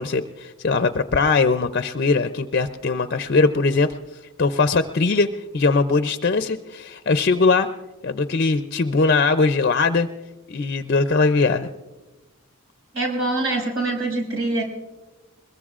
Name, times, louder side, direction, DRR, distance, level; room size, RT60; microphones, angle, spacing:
voice 1, 0.0-3.9 4.4-5.3 5.5-7.7 8.0-10.1 10.5-11.7, left 4 dB, 50° left, 9 dB, 0.5 m, -20 dB
voice 2, 12.9-14.6, right 2 dB, 80° right, 1 dB, 5.5 m, -24 dB
22.0 x 22.0 x 2.4 m, 1.1 s
head